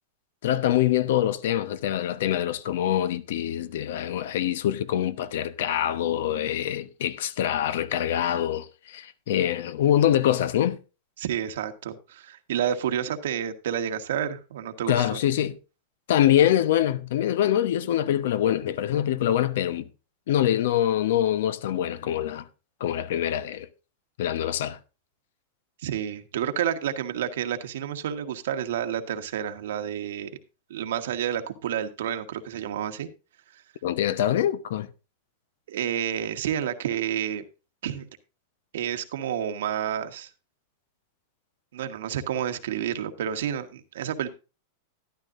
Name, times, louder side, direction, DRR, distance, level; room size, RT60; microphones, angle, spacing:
voice 1, 0.4-10.8 14.9-15.6 16.1-19.8 20.3-22.5 22.8-23.7 24.2-24.8 33.8-34.9, left 11 dB, 75° left, 1.0 m, -24 dB
voice 2, 11.2-15.2 25.8-30.3 30.7-33.1 33.5-33.6 35.7-37.4 37.8-38.1 38.7-40.3 41.7-44.3, right 9 dB, 80° right, 1.4 m, -30 dB
13.0 x 11.5 x 2.6 m
supercardioid pair, 135°, 0 cm